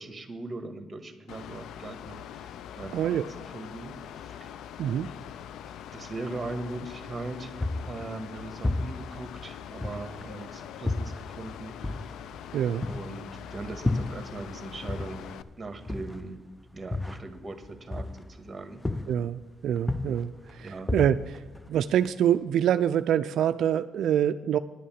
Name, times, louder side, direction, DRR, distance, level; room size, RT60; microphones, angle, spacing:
voice 1, 0.0-2.5 2.7-3.2 3.5-4.5 5.9-11.9 12.8-15.2 15.6-16.4 16.7-18.8 20.6-20.9, right 2 dB, 25° right, 8 dB, 1.6 m, -40 dB
Mechanical fan, 1.3-15.4, left 9 dB, 80° left, 0.4 m, -43 dB
voice 2, 2.9-3.3 4.8-5.1 12.5-12.9 19.1-21.4 21.7-24.6, right 10 dB, 75° right, 10 dB, 0.3 m, -26 dB
sound 1, 7.6-10.4 10.9-14.6 14.9-18.5 18.8-19.4 19.8-22.1, left 2 dB, 10° left, 0.4 m, -33 dB
10.0 x 8.5 x 7.3 m, 1.3 s
cardioid pair, 90°, 0 cm